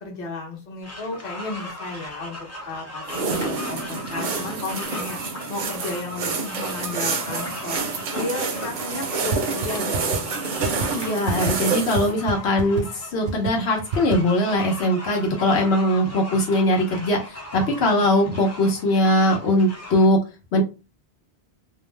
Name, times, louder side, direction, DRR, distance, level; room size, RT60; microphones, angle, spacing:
voice 1, 0.0-2.4 2.6-5.2 5.5-7.8 8.1-10.7, left 3 dB, 45° left, 0 dB, 1.0 m, -33 dB
sound 1, 0.8-20.0, left 1 dB, 15° left, 0.7 m, -38 dB
sound 2, 3.1-12.1, right 4 dB, 55° right, 0.6 m, -28 dB
sound 3, 9.3-9.4 9.6-9.7 9.9-10.2 10.6-10.9 11.3-11.5 11.9-12.0 12.3-12.4 12.6-12.8 13.3-13.5 13.9-14.2, right 4 dB, 90° right, 0.9 m, -25 dB
voice 2, 10.9-20.2 20.5-20.6, left 1 dB, 80° left, 1 dB, 1.0 m, -21 dB
2.6 x 2.0 x 3.2 m, 0.29 s
omnidirectional pair, 1.1 m